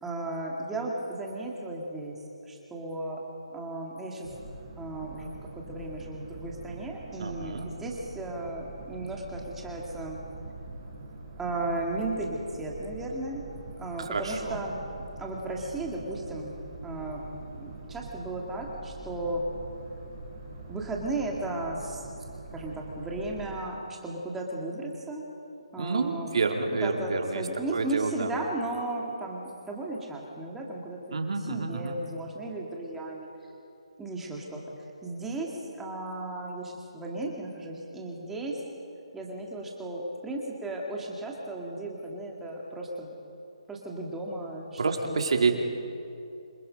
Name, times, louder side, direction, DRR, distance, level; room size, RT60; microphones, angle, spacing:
voice 1, 0.0-2.2 2.4-3.2 3.5-4.3 4.8-10.2 11.4-13.4 13.8-14.8 15.2-16.6 16.8-19.4 20.7-22.0 22.5-25.2 25.7-26.3 26.7-31.2 31.5-33.3 34.0-34.6 35.0-38.6 39.1-43.1 43.7-45.6, right 2 dB, 5° right, -2 dB, 2.3 m, -35 dB
Boat Water vehicle, 4.2-23.7, right 3 dB, 25° right, 5.7 m, -44 dB
voice 2, 7.2-7.7 14.0-14.6 25.8-28.3 31.1-32.0 44.8-45.6, right 4 dB, 60° right, 3 dB, 2.8 m, -29 dB
27.0 x 21.0 x 5.3 m, 2.7 s
hypercardioid pair, 165°, 3 cm